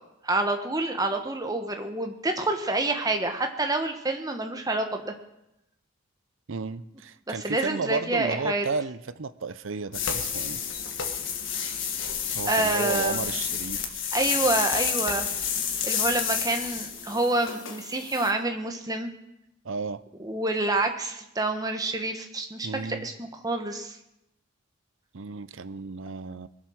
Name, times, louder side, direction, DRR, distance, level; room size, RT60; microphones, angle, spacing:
voice 1, 0.2-5.1 7.3-8.6 12.5-13.2 14.1-15.3 15.8-19.1 20.2-22.7 23.0-24.0, right 2 dB, 20° right, 5 dB, 1.3 m, -27 dB
voice 2, 6.5-10.6 12.3-13.9 19.6-20.0 22.6-23.1 25.1-26.5, right 4 dB, 70° right, 15 dB, 0.6 m, -33 dB
sound 1, 9.9-18.3, left 7 dB, 60° left, 1.7 m, -30 dB
21.5 x 7.5 x 6.3 m, 0.87 s
head